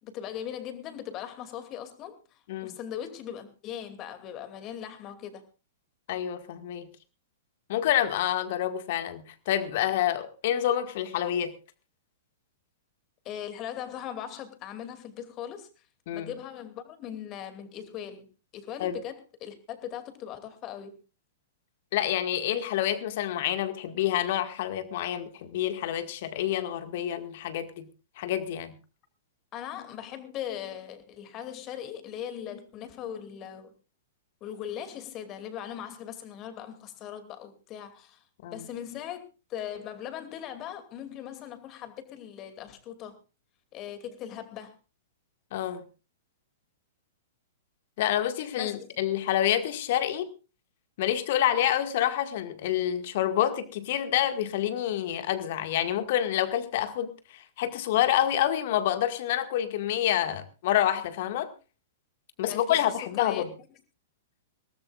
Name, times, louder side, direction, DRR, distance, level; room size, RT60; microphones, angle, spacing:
voice 1, 0.0-5.4 13.2-15.7 16.1-18.3 18.5-21.0 29.5-33.7 34.4-38.2 38.5-39.2 39.5-43.2 43.7-44.8 48.6-48.9 62.5-63.5, left 10 dB, 30° left, 9 dB, 2.6 m, -39 dB
voice 2, 6.1-6.9 7.7-11.5 16.1-16.3 18.8-19.0 21.9-27.9 28.2-28.8 38.4-38.7 45.5-45.8 48.0-50.3 51.0-61.5 62.4-63.5, left 11 dB, 50° left, 9 dB, 1.9 m, -28 dB
22.0 x 18.0 x 2.5 m, 0.31 s
figure-of-eight pair, 105°, 0 cm